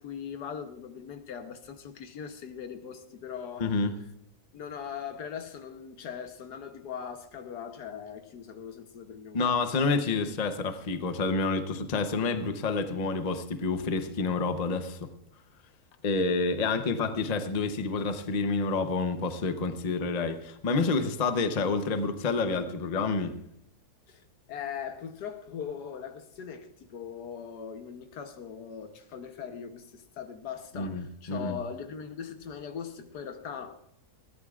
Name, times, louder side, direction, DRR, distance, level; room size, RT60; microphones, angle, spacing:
voice 1, 0.0-3.7 4.5-9.6 24.1-24.2 24.5-33.8, left 7 dB, 75° left, 1.5 m, -40 dB
voice 2, 3.6-3.9 9.3-15.1 16.0-23.3 30.7-31.6, left 4 dB, 35° left, 0.7 m, -28 dB
20.5 x 15.0 x 2.4 m
omnidirectional pair, 1.7 m